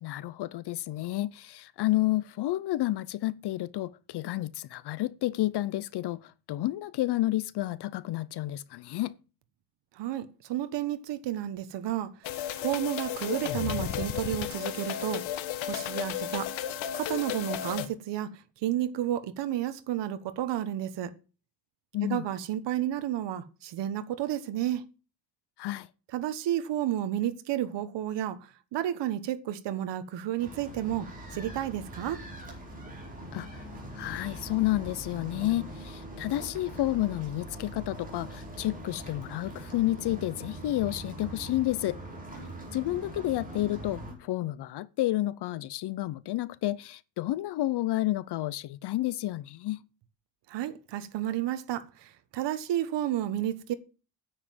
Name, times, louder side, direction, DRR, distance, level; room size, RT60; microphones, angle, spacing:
voice 1, 0.0-9.1 21.9-22.2 25.6-25.9 33.3-33.6 33.9-42.0 42.7-49.8, left 16 dB, 60° left, 0.7 m, -30 dB
voice 2, 10.0-12.1 12.5-15.2 15.6-16.5 16.9-21.1 22.0-24.8 26.1-28.4 28.7-32.2 50.5-53.7, right 12 dB, 65° right, 1.3 m, -31 dB
sound 1, 12.2-17.9, left 11 dB, 85° left, 1.6 m, -33 dB
sound 2, 30.4-44.1, right 1 dB, 20° right, 4.6 m, -42 dB
9.9 x 7.4 x 7.7 m
cardioid pair, 145°, 45 cm